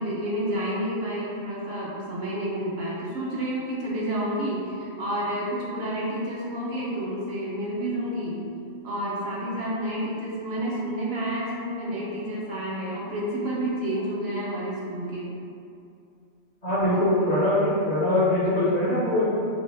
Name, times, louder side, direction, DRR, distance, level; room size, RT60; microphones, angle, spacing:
voice 1, 0.0-8.4 8.8-15.3, right 1 dB, 65° right, -5 dB, 0.7 m, -30 dB
voice 2, 16.6-19.2, left 1 dB, 50° left, -10 dB, 0.5 m, -22 dB
2.7 x 2.5 x 3.1 m, 2.5 s
omnidirectional pair, 1.3 m